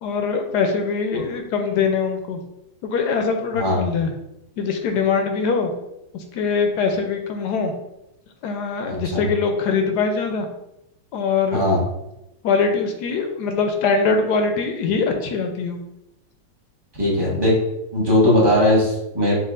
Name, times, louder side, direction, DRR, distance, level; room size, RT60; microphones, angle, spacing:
voice 1, 0.0-2.4 2.8-4.1 4.6-5.7 6.1-7.7 8.4-10.5 11.1-11.6 12.4-15.8, left 5 dB, 75° left, 5 dB, 1.0 m, -22 dB
voice 2, 8.8-9.2 11.5-11.8 17.0-17.5 17.9-19.3, left 1 dB, 20° right, -6 dB, 0.7 m, -19 dB
6.1 x 2.4 x 2.5 m, 0.88 s
omnidirectional pair, 2.1 m